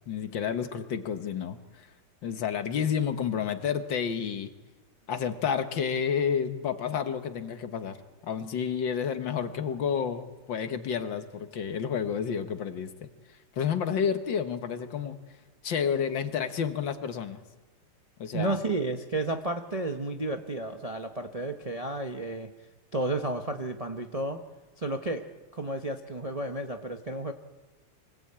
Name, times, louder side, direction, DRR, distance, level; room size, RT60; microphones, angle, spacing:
voice 1, 0.1-1.9 2.2-4.5 5.1-8.0 8.2-13.1 13.5-15.2 15.6-17.4 18.2-18.6, left 7 dB, 60° left, 9 dB, 1.8 m, -30 dB
voice 2, 18.3-22.5 22.9-24.5 24.8-25.2 25.5-27.3, right 2 dB, 30° right, 5 dB, 0.7 m, -32 dB
25.0 x 18.5 x 8.7 m, 1.2 s
omnidirectional pair, 2.4 m